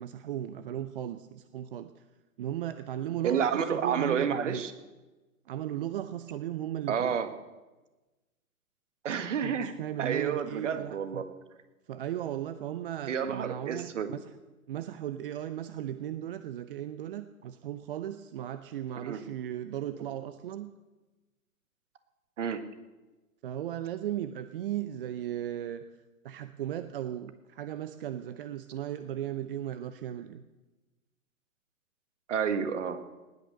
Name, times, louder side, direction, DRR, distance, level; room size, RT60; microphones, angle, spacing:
voice 1, 0.0-1.9 2.4-4.6 5.5-7.2 9.4-11.2 11.9-14.2 14.7-20.7 23.4-25.8 26.2-30.4, right 11 dB, 40° right, 11 dB, 0.7 m, -36 dB
voice 2, 3.2-4.7 6.9-7.3 9.0-9.7 10.0-11.2 13.1-14.1 19.0-19.2 20.0-20.1 22.4-22.6 32.3-33.0, right 7 dB, 60° right, 9 dB, 1.7 m, -30 dB
19.0 x 9.4 x 6.8 m, 1.1 s
figure-of-eight pair, 120°, 43 cm